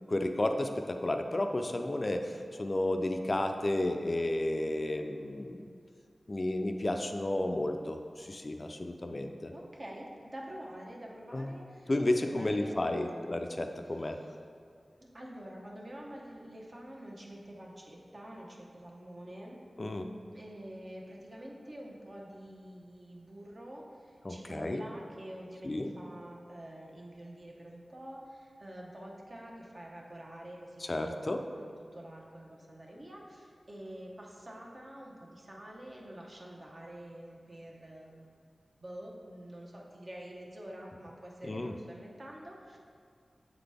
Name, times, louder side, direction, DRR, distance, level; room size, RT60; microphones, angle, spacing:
voice 1, 0.1-5.6 6.3-9.5 11.3-11.5 11.9-14.2 19.8-20.1 24.2-24.8 25.6-25.9 30.9-31.4 41.4-41.7, left 1 dB, 40° left, 5 dB, 0.3 m, -32 dB
voice 2, 9.5-13.2 14.1-14.3 15.0-19.6 20.3-38.3 38.8-42.8, right 1 dB, 45° right, -2 dB, 0.9 m, -47 dB
7.4 x 3.9 x 3.4 m, 2.2 s
wide cardioid pair, 70°, 0 cm